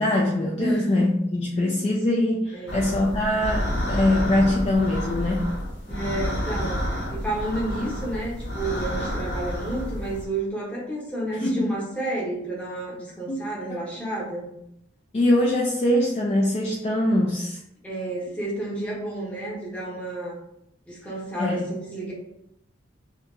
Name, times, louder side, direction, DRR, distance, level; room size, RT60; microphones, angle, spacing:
voice 1, 0.0-5.6 11.4-11.7 13.3-13.4 13.7-13.9 15.1-17.6 21.4-21.7, left 1 dB, 30° left, -2 dB, 0.3 m, -23 dB
voice 2, 0.6-1.0 1.7-1.8 2.5-2.9 5.9-14.4 17.8-20.4 20.9-22.1, right 1 dB, 5° left, -5 dB, 0.8 m, -31 dB
sound 1, 2.7-10.2, equal, 60° left, 0.8 m, -29 dB
2.8 x 2.2 x 3.6 m, 0.77 s
head